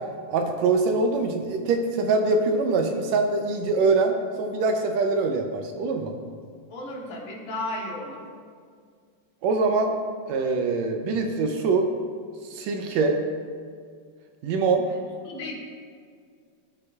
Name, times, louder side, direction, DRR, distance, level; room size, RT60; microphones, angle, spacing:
voice 1, 0.3-6.1 9.4-9.9 10.3-11.9 12.5-13.2 14.4-14.9, right 3 dB, 75° right, 4 dB, 1.8 m, -23 dB
voice 2, 6.7-8.2 14.9-15.0 15.2-15.6, left 1 dB, 75° left, -3 dB, 2.7 m, -34 dB
16.5 x 5.7 x 2.3 m, 2.1 s
omnidirectional pair, 3.3 m